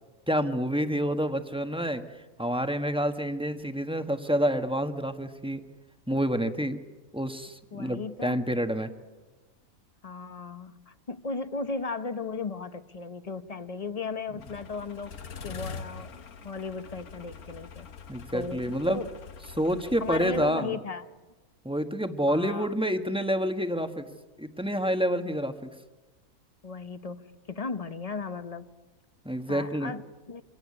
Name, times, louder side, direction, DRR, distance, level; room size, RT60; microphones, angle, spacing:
voice 1, 0.3-2.0 2.4-5.6 6.1-6.8 7.1-8.9 18.1-19.0 19.5-20.8 21.6-24.0 24.4-25.7 29.2-29.9, equal, 5° right, 7 dB, 1.2 m, -28 dB
voice 2, 7.7-8.4 10.0-15.1 15.4-17.9 18.3-19.1 20.0-21.1 22.3-22.7 26.6-28.7 29.5-30.4, left 4 dB, 30° left, 11 dB, 1.0 m, -36 dB
sound 1, 14.4-20.5, left 5 dB, 85° left, 1.7 m, -44 dB
26.0 x 18.0 x 9.8 m, 1.2 s
omnidirectional pair, 1.5 m